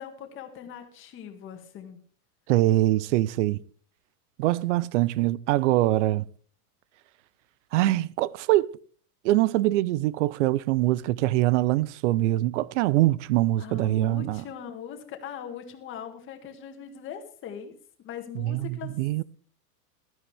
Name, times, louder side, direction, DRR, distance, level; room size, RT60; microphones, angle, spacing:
voice 1, 0.0-2.0 13.6-17.7 18.0-18.9, left 8 dB, 25° left, 1.9 m, -40 dB
voice 2, 2.5-3.6 4.4-6.3 7.7-8.7 9.2-14.4 18.3-19.2, right 16 dB, 50° right, 0.6 m, -23 dB
16.5 x 12.5 x 3.4 m
supercardioid pair, 155°, 47 cm